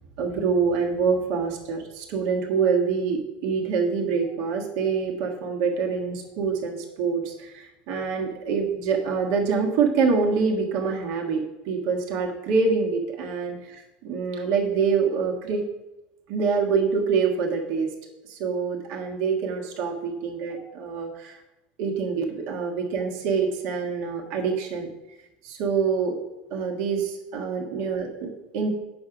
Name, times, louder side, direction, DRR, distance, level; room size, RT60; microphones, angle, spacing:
voice 1, 0.2-13.6 14.0-15.6 16.3-17.9 18.3-21.4 21.8-24.9 25.4-26.2 26.5-28.7, right 5 dB, 70° right, 0 dB, 1.6 m, -25 dB
8.5 x 6.2 x 5.0 m, 1.0 s
supercardioid pair, 115°, 5 cm